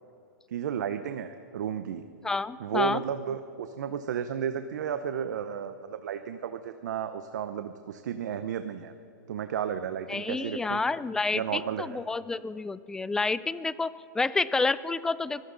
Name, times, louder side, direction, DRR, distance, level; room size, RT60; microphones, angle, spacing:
voice 1, 0.5-2.0 2.6-8.9 9.3-10.8 11.3-12.0, right 8 dB, 75° right, 9 dB, 0.8 m, -33 dB
voice 2, 2.2-3.0 10.1-15.4, left 3 dB, 5° left, 17 dB, 0.3 m, -29 dB
23.0 x 15.5 x 3.9 m, 2.5 s
hypercardioid pair, 145°, 10 cm